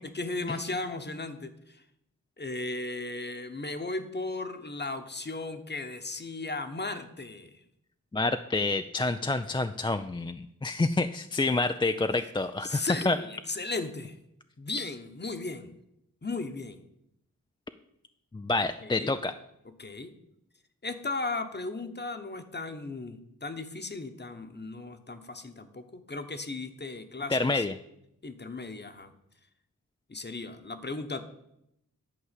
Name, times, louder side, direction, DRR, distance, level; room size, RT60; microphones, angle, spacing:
voice 1, 0.1-1.8 2.4-7.6 12.6-14.2 14.6-15.7 16.2-16.8 18.8-19.1 19.8-20.1 20.8-27.6 28.2-29.1 30.1-31.2, left 3 dB, 30° left, 8 dB, 1.1 m, -36 dB
voice 2, 8.1-13.2 18.3-19.3 27.3-27.7, left 3 dB, 15° left, 8 dB, 0.3 m, -28 dB
11.0 x 4.8 x 8.2 m, 0.80 s
wide cardioid pair, 80°, 33 cm